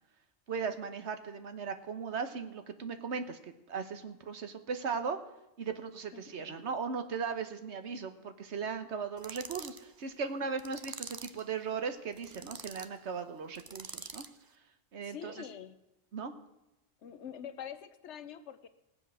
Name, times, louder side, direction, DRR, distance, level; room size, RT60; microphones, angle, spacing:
voice 1, 0.5-3.4 3.7-5.2 5.6-14.2 14.9-15.4 16.1-16.3, right 5 dB, 80° right, 9 dB, 1.4 m, -37 dB
voice 2, 6.1-6.6 15.0-15.8 17.0-18.7, left 8 dB, 80° left, 12 dB, 1.1 m, -45 dB
sound 1, 9.2-9.8 10.6-11.4 12.1-12.9 13.5-14.4, right 4 dB, 40° right, 0.3 m, -45 dB
19.0 x 7.7 x 6.2 m, 0.93 s
omnidirectional pair, 1.2 m